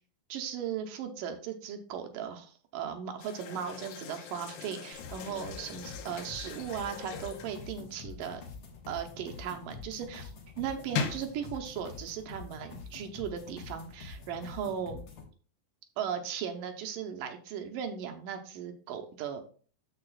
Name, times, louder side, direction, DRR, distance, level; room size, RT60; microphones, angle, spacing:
voice 1, 0.3-8.4 8.9-15.1 16.0-19.4, right 8 dB, 75° right, 5 dB, 2.3 m, -37 dB
sound 1, 3.2-8.1 10.7-11.6, left 6 dB, 75° left, 2.5 m, -40 dB
sound 2, 4.9-15.2, left 4 dB, 55° left, 1.6 m, -46 dB
14.5 x 4.9 x 2.4 m, 0.42 s
omnidirectional pair, 4.2 m